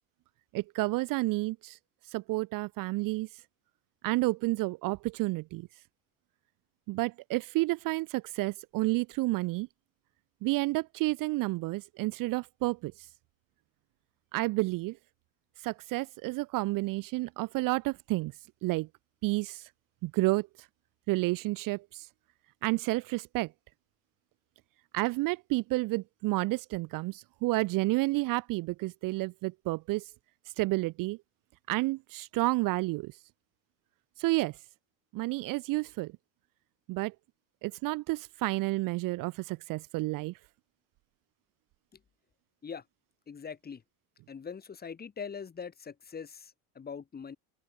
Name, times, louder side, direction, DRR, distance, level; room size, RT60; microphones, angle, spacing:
voice 1, 0.5-1.8 2.1-3.3 4.0-5.7 6.9-9.7 10.4-12.9 14.3-14.9 15.6-18.3 18.6-18.9 19.2-19.6 20.0-20.5 21.1-22.1 22.6-23.5 24.9-30.0 30.6-31.2 31.7-33.1 34.2-34.5 35.1-36.1 36.9-37.1 37.6-40.3, right 21 dB, 55° right, 0.5 m, -30 dB
voice 2, 43.3-43.8 44.3-47.4, left 6 dB, 25° left, 2.4 m, -42 dB
open air
cardioid pair, 140°, 41 cm